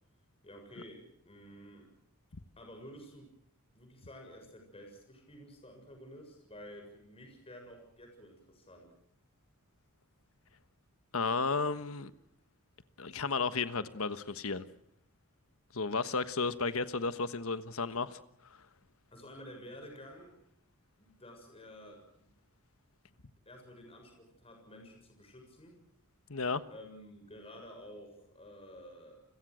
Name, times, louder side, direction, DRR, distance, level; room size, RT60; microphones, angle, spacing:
voice 1, 0.4-1.9 2.6-3.3 3.7-8.9 19.1-20.3 21.0-22.3 23.5-25.8 26.7-29.2, equal, 25° left, 6.9 m, -51 dB
voice 2, 11.1-12.1 13.0-14.7 15.7-18.2 26.3-26.6, left 4 dB, 65° left, 1.3 m, -33 dB
30.0 x 22.5 x 6.4 m
head